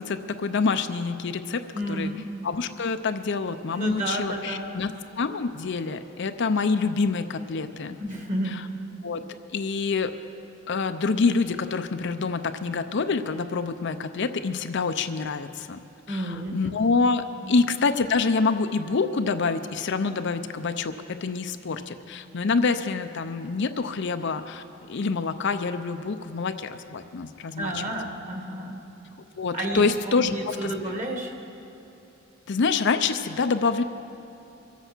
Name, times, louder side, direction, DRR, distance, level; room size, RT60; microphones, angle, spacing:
voice 1, 0.0-1.6 1.9-2.1 2.4-4.9 5.2-8.0 8.5-8.6 9.0-9.2 9.5-10.1 10.7-15.8 16.1-27.8 29.4-30.7 32.5-33.8, left 4 dB, 60° left, 9 dB, 0.6 m, -26 dB
voice 2, 1.7-2.2 3.7-4.9 8.0-8.6 16.1-16.7 17.4-17.5 27.6-28.8 29.5-31.3, right 1 dB, 35° right, 1 dB, 2.0 m, -31 dB
24.5 x 8.1 x 6.1 m, 2.9 s
head